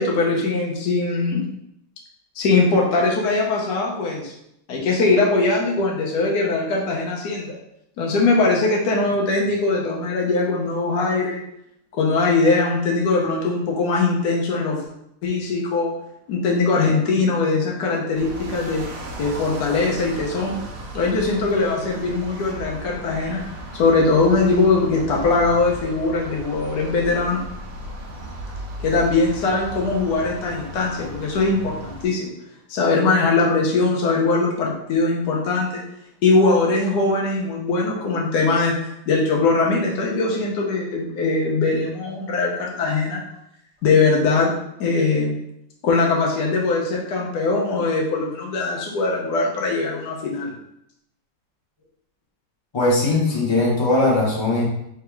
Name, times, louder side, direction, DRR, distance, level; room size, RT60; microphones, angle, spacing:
voice 1, 0.0-1.5 2.4-4.3 4.7-7.6 8.0-11.4 11.9-14.8 15.2-15.9 16.3-18.8 19.2-20.6 20.9-23.4 23.7-27.4 28.8-32.3 32.7-35.8 36.2-38.8 39.1-43.2 43.8-44.5 44.8-45.3 45.8-50.5, left 3 dB, 65° left, -1 dB, 1.3 m, -21 dB
sound 1, 18.1-32.0, right 1 dB, 65° right, 0.6 m, -36 dB
voice 2, 52.7-54.6, left 2 dB, 25° left, -3 dB, 0.6 m, -19 dB
3.5 x 2.9 x 4.5 m, 0.78 s
omnidirectional pair, 1.9 m